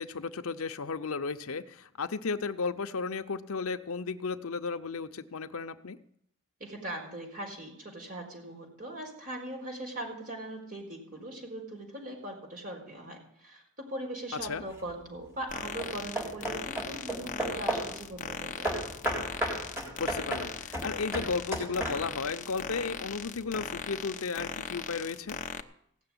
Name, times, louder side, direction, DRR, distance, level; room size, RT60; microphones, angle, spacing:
voice 1, 0.0-6.0 14.4-14.6 20.0-25.4, left 4 dB, 75° left, 10 dB, 0.7 m, -34 dB
voice 2, 6.6-18.7, right 1 dB, 40° right, 1 dB, 4.4 m, -40 dB
Hammer / Wood, 14.4-14.9 15.6-18.0 18.6-22.3, right 1 dB, 10° right, 3.8 m, -34 dB
sound 1, 15.5-25.6, left 6 dB, 35° left, 0.8 m, -39 dB
16.5 x 6.8 x 9.8 m, 0.70 s
head